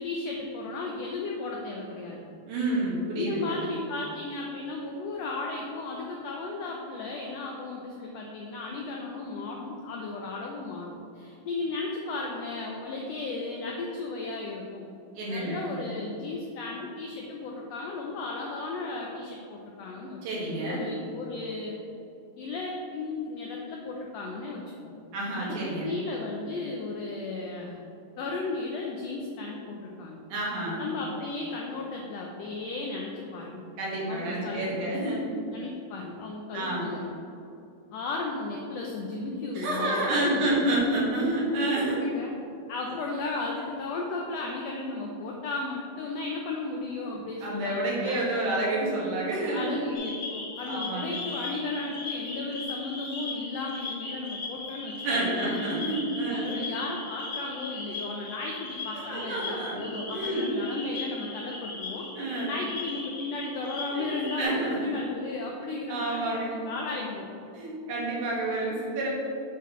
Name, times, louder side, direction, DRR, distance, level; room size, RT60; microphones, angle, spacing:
voice 1, 0.0-2.2 3.2-14.8 15.3-21.8 22.4-24.9 25.4-27.8 28.2-30.2 30.8-33.6 34.1-35.0 35.5-37.1 37.9-40.6 42.0-42.3 42.7-48.2 49.5-55.6 56.3-62.1 62.4-67.3, left 3 dB, 85° left, -1 dB, 1.5 m, -35 dB
voice 2, 2.5-3.6 15.1-15.7 20.2-20.8 25.1-26.0 30.3-30.8 33.8-35.2 36.5-36.9 39.5-42.0 47.1-49.7 50.7-51.2 55.0-56.5 59.1-60.5 62.1-62.5 63.9-65.0 65.7-66.6 67.5-69.1, right 1 dB, 75° right, -5 dB, 3.0 m, -29 dB
sound 1, 49.9-64.4, left 3 dB, 65° left, 2.8 m, -38 dB
7.5 x 5.7 x 3.1 m, 2.7 s
omnidirectional pair, 3.6 m